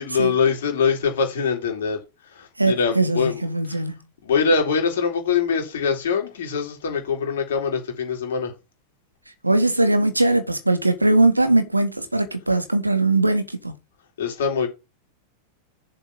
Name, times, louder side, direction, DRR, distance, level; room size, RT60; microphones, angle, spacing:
voice 1, 0.0-2.0 2.3-3.8 4.2-8.5 14.2-14.7, left 5 dB, 60° left, 3.7 m, -23 dB
voice 2, 2.6-4.0 9.4-13.7, right 2 dB, 85° right, 1.6 m, -20 dB
7.1 x 5.4 x 7.2 m
figure-of-eight pair, 90°, 0 cm